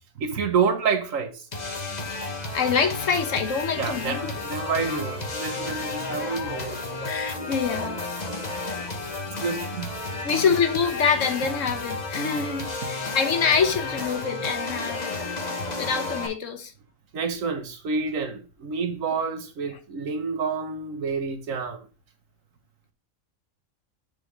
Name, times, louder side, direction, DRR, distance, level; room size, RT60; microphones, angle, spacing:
voice 1, 0.2-1.5 3.8-6.8 8.6-8.7 9.2-9.9 15.8-16.0 17.1-21.8, right 5 dB, 80° right, 1.5 m, -28 dB
sound 1, 1.5-16.3, left 3 dB, 35° left, 1.2 m, -32 dB
voice 2, 2.5-4.3 7.1-8.0 8.7-8.8 10.2-15.2 15.8-16.7, left 6 dB, 70° left, 1.4 m, -25 dB
6.4 x 4.0 x 5.0 m
omnidirectional pair, 1.4 m